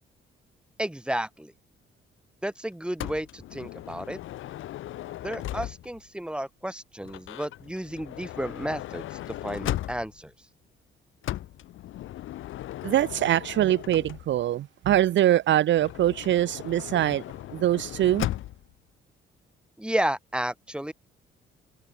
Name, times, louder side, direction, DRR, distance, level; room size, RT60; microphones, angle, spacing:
voice 1, 0.8-1.5 2.4-4.2 5.2-9.1 9.4-10.3 19.8-20.9, right 1 dB, 5° right, 0.9 m, -32 dB
Motor vehicle (road) / Sliding door, 3.0-6.1 7.0-10.3 11.2-14.5 15.8-18.7, left 14 dB, 80° left, 2.6 m, -37 dB
voice 2, 12.8-17.2 17.5-18.3, right 12 dB, 70° right, 0.9 m, -23 dB
cardioid pair, 90°, 20 cm